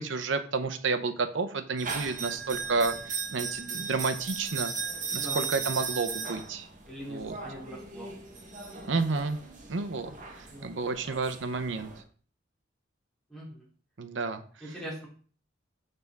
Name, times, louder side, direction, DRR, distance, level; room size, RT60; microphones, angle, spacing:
voice 1, 0.0-4.7 5.1-6.7 7.1-7.4 8.8-9.4 9.7-10.1 10.4-11.9 14.0-14.4, right 4 dB, 85° right, 8 dB, 0.7 m, -30 dB
sound 1, 1.8-12.0, right 5 dB, 45° right, 1.1 m, -37 dB
voice 2, 6.9-8.1 10.5-10.8 11.1-11.2 13.3-13.6 14.6-15.0, equal, 5° left, -8 dB, 3.4 m, -42 dB
6.7 x 5.2 x 3.5 m, 0.43 s
head